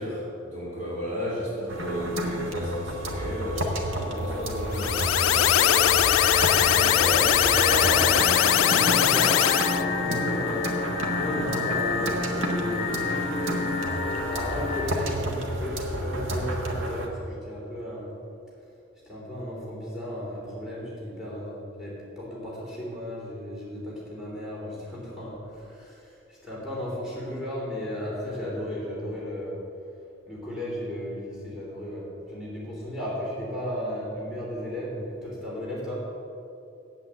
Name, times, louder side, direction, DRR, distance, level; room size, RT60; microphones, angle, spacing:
voice 1, 0.0-6.0, equal, 40° right, -7 dB, 2.6 m, -33 dB
sound 1, 1.7-17.1, right 1 dB, 80° right, 1.4 m, -31 dB
sound 2, 4.7-9.8, left 12 dB, 90° left, 0.3 m, -21 dB
sound 3, 5.6-14.8, left 4 dB, 35° left, 1.4 m, -30 dB
voice 2, 6.7-10.8 11.1-13.8 14.3-18.1 19.0-29.6 30.3-36.0, equal, 5° right, -7 dB, 3.3 m, -34 dB
8.6 x 8.4 x 7.5 m, 2.6 s
head